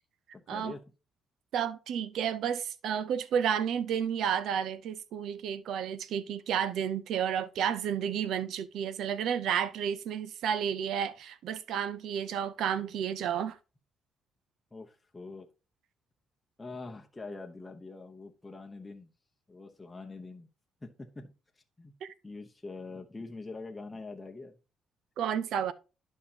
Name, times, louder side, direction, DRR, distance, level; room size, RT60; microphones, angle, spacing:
voice 1, 0.3-0.8 14.7-15.5 16.6-19.1 19.5-20.5 20.8-21.3 21.8-21.9 22.2-24.6, left 3 dB, 15° left, 0.8 m, -44 dB
voice 2, 1.5-13.6 22.0-22.1 25.2-25.7, right 8 dB, 75° right, 0.6 m, -31 dB
10.5 x 5.4 x 2.8 m
cardioid pair, 120°, 0 cm